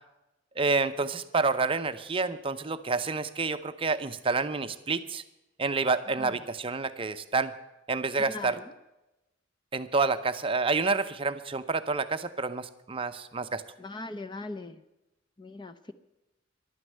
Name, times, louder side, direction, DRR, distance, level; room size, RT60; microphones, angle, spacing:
voice 1, 0.6-5.2 5.6-7.5 7.9-8.6 9.7-13.6, right 4 dB, 30° right, 9 dB, 0.6 m, -28 dB
voice 2, 8.3-8.6 13.8-14.8 15.4-15.9, left 2 dB, 25° left, 10 dB, 0.7 m, -40 dB
11.5 x 9.6 x 9.3 m, 0.96 s
head